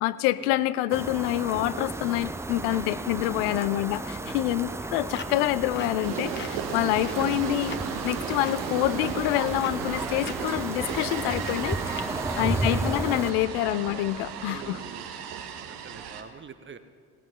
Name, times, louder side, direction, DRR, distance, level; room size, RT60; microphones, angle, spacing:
voice 1, 0.0-7.7 8.0-14.8, left 15 dB, 65° left, 16 dB, 0.5 m, -27 dB
sound 1, 0.9-13.3, right 2 dB, 5° right, 0.4 m, -33 dB
voice 2, 3.2-3.7 4.7-4.8 7.2-7.5 12.4-12.8 14.5-15.1 15.7-16.8, right 6 dB, 25° right, 10 dB, 0.8 m, -44 dB
sound 2, 4.6-13.2, left 4 dB, 20° left, 0.9 m, -43 dB
sound 3, 6.0-16.2, right 7 dB, 70° right, 1.0 m, -35 dB
18.0 x 13.0 x 3.0 m, 2.1 s
figure-of-eight pair, 40°, 48 cm